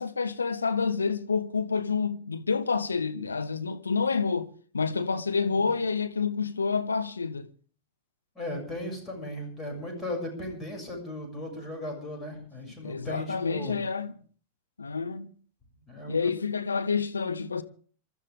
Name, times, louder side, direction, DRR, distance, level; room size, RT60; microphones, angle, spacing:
voice 1, 0.0-4.5 4.7-7.5 12.3-12.4 12.8-14.1 14.8-15.3 16.1-17.6, left 5 dB, 75° left, 0.9 m, -28 dB
voice 2, 8.4-13.8 15.9-16.3, left 1 dB, 15° left, 7.0 m, -37 dB
27.0 x 12.5 x 3.6 m
figure-of-eight pair, 90°, 0 cm